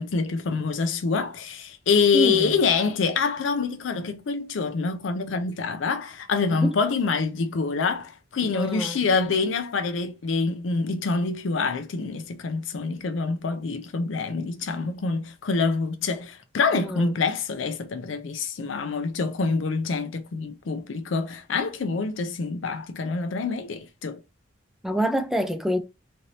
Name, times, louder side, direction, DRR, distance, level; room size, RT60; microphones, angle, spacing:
voice 1, 0.0-24.2, left 4 dB, 80° left, 0.5 m, -26 dB
voice 2, 2.1-2.6 6.5-6.8 8.5-9.0 16.7-17.1 24.8-25.8, right 1 dB, ahead, 0.4 m, -26 dB
3.2 x 2.6 x 2.6 m
head